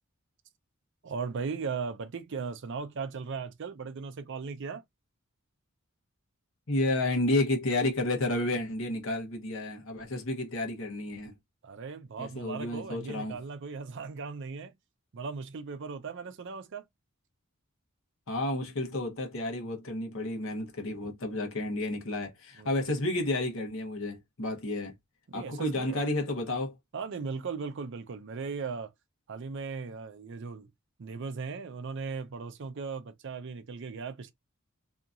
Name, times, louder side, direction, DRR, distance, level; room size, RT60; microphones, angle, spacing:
voice 1, 1.0-4.8 11.6-14.7 15.1-16.8 22.6-22.8 25.3-26.0 26.9-28.9 29.3-30.7 31.0-34.3, right 5 dB, 60° right, 0.5 m, -37 dB
voice 2, 6.7-11.4 12.2-13.4 18.3-24.9 25.3-26.7, left 1 dB, 65° left, 1.0 m, -31 dB
2.8 x 2.5 x 2.4 m
head